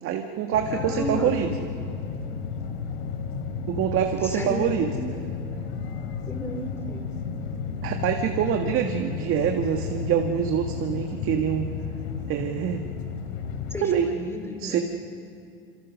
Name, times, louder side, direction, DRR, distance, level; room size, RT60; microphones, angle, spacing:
voice 1, 0.0-1.5 3.7-4.9 7.8-11.7 12.3-12.8 13.8-14.1 14.6-14.8, right 9 dB, 45° right, 4 dB, 1.9 m, -25 dB
Jet Star Takeoff, 0.5-13.8, left 6 dB, 80° left, 3.3 m, -33 dB
voice 2, 0.7-1.3 4.2-4.9 6.3-7.0 13.7-14.8, equal, 10° left, 3 dB, 4.9 m, -33 dB
27.0 x 26.5 x 6.5 m, 2.4 s
supercardioid pair, 105°, 31 cm